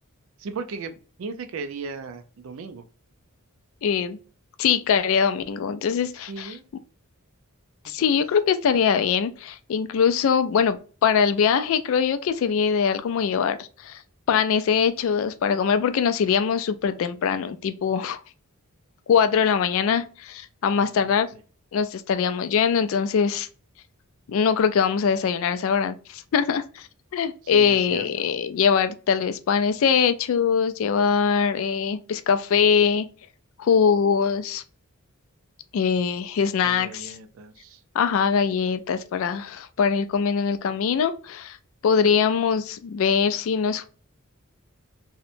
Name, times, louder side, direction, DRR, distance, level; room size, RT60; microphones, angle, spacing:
voice 1, 0.4-2.8 6.3-6.6 20.8-21.2 27.4-28.1 36.6-37.8, right 4 dB, 65° right, 0.4 m, -37 dB
voice 2, 3.8-4.2 4.6-6.5 7.8-10.8 11.0-14.0 14.3-18.2 19.1-21.3 21.7-23.5 24.3-26.9 27.1-33.1 33.6-34.6 35.7-37.2 37.9-41.6 41.8-43.9, left 6 dB, 65° left, 0.3 m, -22 dB
2.8 x 2.1 x 2.5 m
head